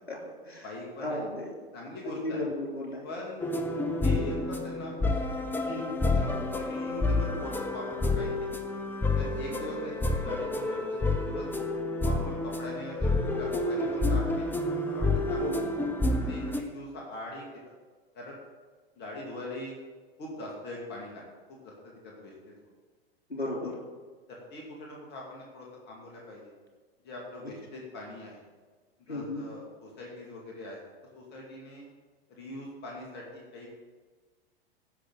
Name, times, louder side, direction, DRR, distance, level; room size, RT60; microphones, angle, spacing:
voice 1, 0.1-0.7 1.0-1.5 2.0-3.1 5.7-6.0 15.4-15.6 23.3-23.8 29.1-29.4, left 1 dB, 85° left, -2 dB, 3.8 m, -35 dB
voice 2, 0.6-1.2 1.7-2.4 3.0-3.5 4.0-4.9 5.6-8.5 9.2-11.5 12.0-14.5 14.8-15.6 16.3-17.6 18.1-18.4 19.0-19.7 20.2-21.2 21.5-22.6 24.3-26.5 27.0-28.4 29.1-30.8 31.1-31.9 32.3-33.7, left 1 dB, 35° left, -2 dB, 2.4 m, -41 dB
sound 1, 3.4-16.6, left 2 dB, 5° left, 0.7 m, -29 dB
16.0 x 6.4 x 4.0 m, 1.4 s
figure-of-eight pair, 95°, 30 cm